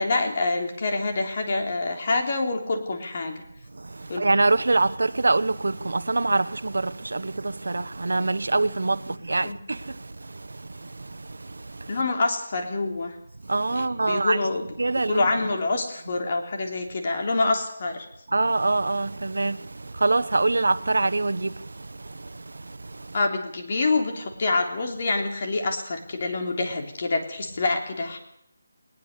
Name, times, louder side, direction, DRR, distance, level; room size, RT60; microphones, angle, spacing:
voice 1, 0.0-3.4 4.1-4.3 9.4-9.6 11.9-13.2 13.7-14.6 15.1-18.1 23.1-28.2, left 3 dB, 35° left, 3.4 m, -26 dB
voice 2, 3.7-12.0 13.4-14.5 14.8-15.3 18.3-23.2, right 3 dB, 80° right, 1.0 m, -25 dB
20.0 x 20.0 x 6.8 m
figure-of-eight pair, 175°, 0 cm